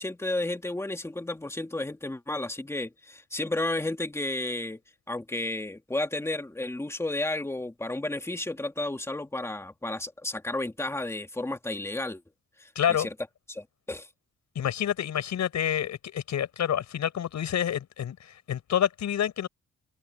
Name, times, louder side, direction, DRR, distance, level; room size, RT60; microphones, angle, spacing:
voice 1, 0.0-4.8 5.1-12.2 12.6-13.1 13.5-14.1, left 2 dB, 10° left, 1.8 m, -32 dB
voice 2, 12.7-13.1 14.5-18.2 18.5-19.5, left 9 dB, 70° left, 6.2 m, -28 dB
open air
cardioid pair, 110°, 29 cm